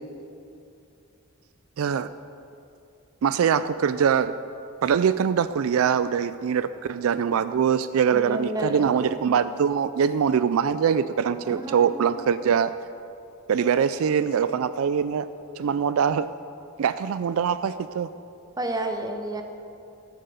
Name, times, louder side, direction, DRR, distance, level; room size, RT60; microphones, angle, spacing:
voice 1, 1.8-2.1 3.2-4.4 4.8-12.7 13.5-15.3 15.6-16.3 16.8-18.1, right 7 dB, 70° right, 13 dB, 0.3 m, -23 dB
voice 2, 8.1-8.9 11.4-12.1 18.6-19.4, right 1 dB, 20° right, 5 dB, 1.0 m, -31 dB
14.0 x 7.6 x 6.9 m, 2.6 s
head